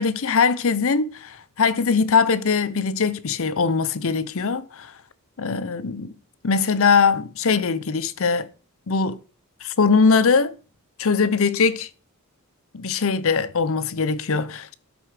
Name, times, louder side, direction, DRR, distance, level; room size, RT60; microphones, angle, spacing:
voice 1, 0.0-4.9 5.4-6.1 6.4-8.5 8.9-9.2 9.6-10.5 11.0-11.9 12.7-14.7, left 5 dB, 65° left, 0.7 m, -21 dB
12.5 x 5.4 x 4.9 m
head